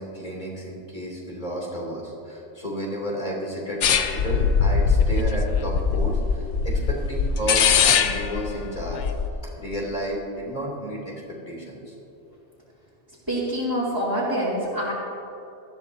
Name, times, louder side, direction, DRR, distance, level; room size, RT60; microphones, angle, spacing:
voice 1, 0.0-9.0 9.6-11.9, right 1 dB, 40° left, -4 dB, 3.1 m, -32 dB
sound 1, 3.8-9.3, left 6 dB, 80° left, 1.0 m, -22 dB
voice 2, 13.3-14.9, equal, 20° right, -10 dB, 2.8 m, -25 dB
19.0 x 14.0 x 2.8 m, 2.9 s
omnidirectional pair, 1.2 m